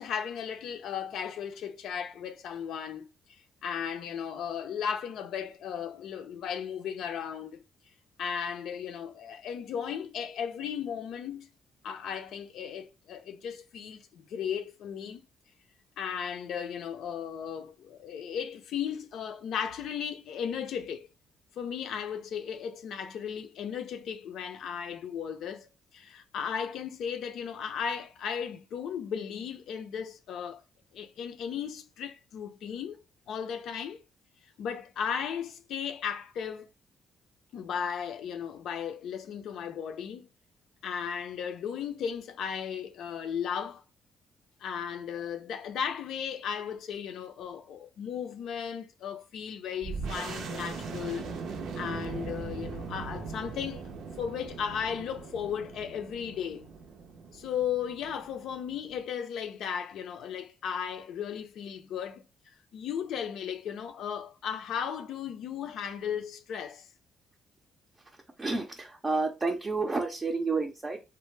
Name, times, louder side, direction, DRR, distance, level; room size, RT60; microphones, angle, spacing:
voice 1, 0.0-7.6 8.2-11.5 11.8-15.2 16.0-21.1 21.6-30.6 30.9-33.0 33.3-34.0 34.6-36.7 37.5-40.3 40.8-43.8 44.6-51.3 51.8-53.8 54.2-56.7 57.3-62.2 62.7-66.9, left 8 dB, 75° left, 0.5 m, -36 dB
sound 1, 49.8-59.0, right 4 dB, 75° right, 0.5 m, -40 dB
voice 2, 68.4-71.0, right 3 dB, 25° right, 0.5 m, -30 dB
3.3 x 2.0 x 3.1 m
cardioid pair, 90°, 0 cm